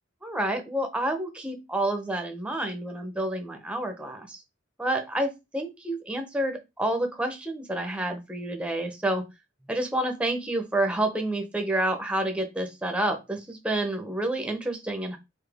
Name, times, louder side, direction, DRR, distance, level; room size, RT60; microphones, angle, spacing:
voice 1, 0.2-4.4 4.8-9.2 9.7-15.2, right 1 dB, 5° right, 5 dB, 0.8 m, -29 dB
4.0 x 3.6 x 3.5 m, 0.23 s
head